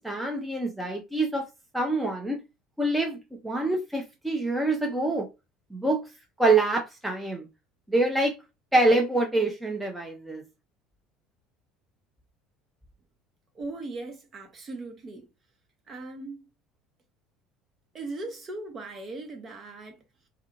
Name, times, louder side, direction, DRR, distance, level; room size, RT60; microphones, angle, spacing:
voice 1, 0.0-1.5 1.7-2.4 2.8-3.2 3.4-5.3 5.7-6.0 6.4-7.5 7.9-8.4 8.7-10.4, right 2 dB, 10° right, 0.7 m, -25 dB
voice 2, 13.5-15.3 15.9-16.5 17.9-20.0, right 2 dB, 35° right, 1.1 m, -38 dB
2.4 x 2.3 x 3.0 m
hypercardioid pair, 65°, 0 cm